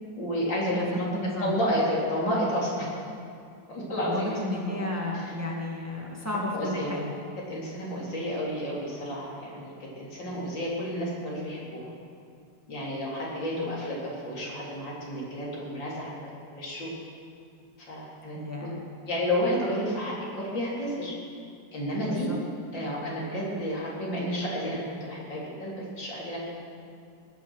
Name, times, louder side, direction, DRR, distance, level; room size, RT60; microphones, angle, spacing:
voice 1, 0.2-1.0 1.4-2.9 3.7-4.4 4.7-4.9 5.1-5.3 6.5-6.9 7.5-11.8 12.7-16.2 16.5-16.9 17.8-18.4 19.0-21.2 21.7-22.3 22.7-26.4, equal, 80° left, -5 dB, 4.2 m, -31 dB
voice 2, 1.1-1.5 4.0-7.1 13.5-13.8 18.3-18.8 22.1-22.4, left 1 dB, 10° right, -2 dB, 1.8 m, -33 dB
19.5 x 9.2 x 6.3 m, 2.3 s
omnidirectional pair, 2.0 m